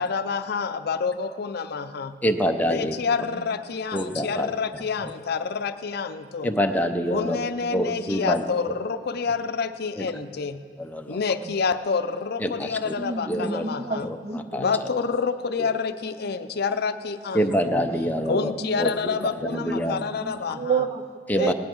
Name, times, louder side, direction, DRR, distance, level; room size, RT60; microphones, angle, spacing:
voice 1, 0.0-2.2 2.7-6.5 7.1-10.6 11.1-14.1 14.6-17.9 18.3-20.7 21.4-21.5, left 5 dB, 60° left, 10 dB, 0.6 m, -28 dB
voice 2, 2.2-2.9 3.9-4.5 6.4-7.4 7.7-8.4 10.0-10.1 10.8-11.2 12.4-12.9 13.3-13.6 14.5-14.6 17.3-18.5 18.8-18.9 19.5-20.0 21.3-21.5, equal, 10° left, 5 dB, 0.6 m, -25 dB
voice 3, 13.0-14.8 18.7-18.8 19.4-21.5, right 5 dB, 35° right, 7 dB, 0.4 m, -31 dB
17.5 x 10.5 x 4.6 m, 2.2 s
head